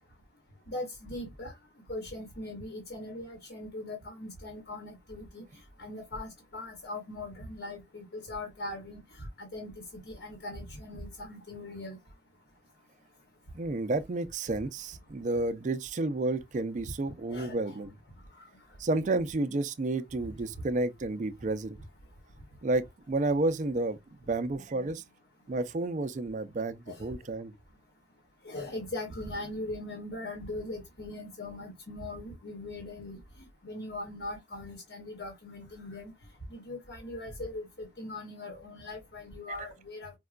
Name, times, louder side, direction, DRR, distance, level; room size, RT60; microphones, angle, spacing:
voice 1, 0.7-1.5 1.9-5.4 5.8-9.7 10.0-12.0 17.3-17.7 26.9-27.1 28.4-33.2 33.6-36.1 36.5-40.1, left 2 dB, 80° left, 1.1 m, -40 dB
voice 2, 13.5-17.9 18.8-21.8 22.6-24.0 24.3-25.0 25.5-27.5, right 2 dB, 45° right, 0.4 m, -31 dB
4.7 x 2.2 x 2.3 m
head